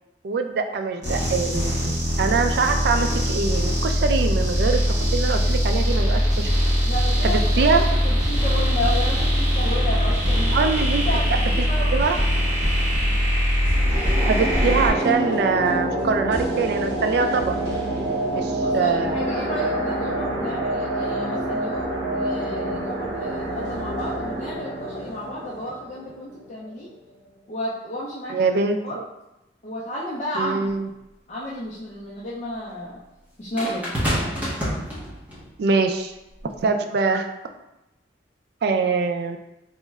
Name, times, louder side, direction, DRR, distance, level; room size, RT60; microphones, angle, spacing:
voice 1, 0.2-4.8 5.1-6.5 7.2-7.8 10.5-11.0 11.9-12.2 14.2-17.6 18.3-19.2 28.3-29.0 30.4-30.9 35.6-36.1 36.6-37.3 38.6-39.4, right 4 dB, 60° right, 5 dB, 0.3 m, -23 dB
sound 1, 1.0-14.9, equal, 40° right, 1.1 m, -21 dB
voice 2, 6.8-10.7 11.0-12.1 12.9-13.2 18.5-26.9 27.5-28.4 28.8-29.0 29.6-30.7 31.3-33.0 33.4-33.9, left 1 dB, 35° left, -7 dB, 0.4 m, -32 dB
sound 2, 13.7-26.7 27.1-27.2, right 1 dB, 75° right, 0.8 m, -27 dB
sound 3, 30.7-30.8 33.6-35.5 36.4-36.6, equal, 10° right, 0.7 m, -27 dB
3.1 x 2.1 x 3.4 m, 0.92 s
head